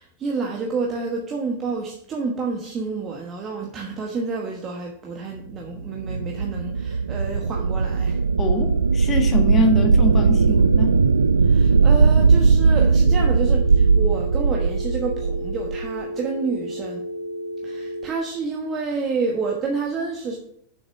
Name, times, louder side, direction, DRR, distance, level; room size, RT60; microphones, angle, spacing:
voice 1, 0.0-8.2 11.4-17.0 17.6-20.4, right 4 dB, 25° right, 0 dB, 1.2 m, -29 dB
sound 1, 5.7-15.9, right 5 dB, 75° right, 0.3 m, -18 dB
voice 2, 8.4-11.0, left 1 dB, 25° left, 4 dB, 1.7 m, -24 dB
Telephone, 13.1-18.1, equal, 65° left, 2.5 m, -32 dB
7.2 x 6.5 x 5.9 m, 0.72 s
figure-of-eight pair, 90°, 0 cm